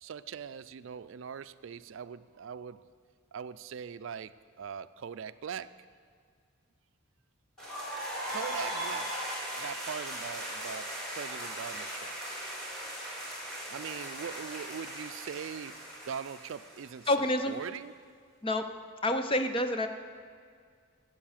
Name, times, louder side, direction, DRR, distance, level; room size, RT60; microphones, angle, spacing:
voice 1, 0.0-2.8 3.3-5.7 8.3-9.1 9.5-12.1 13.7-15.8 16.1-17.1 17.5-17.9, right 7 dB, 65° right, 0.4 m, -41 dB
sound 1, 7.6-17.4, right 1 dB, 5° left, 4.4 m, -38 dB
voice 2, 17.1-17.6 18.4-18.6 19.0-19.9, left 1 dB, 25° left, 0.7 m, -28 dB
13.5 x 8.3 x 7.3 m
head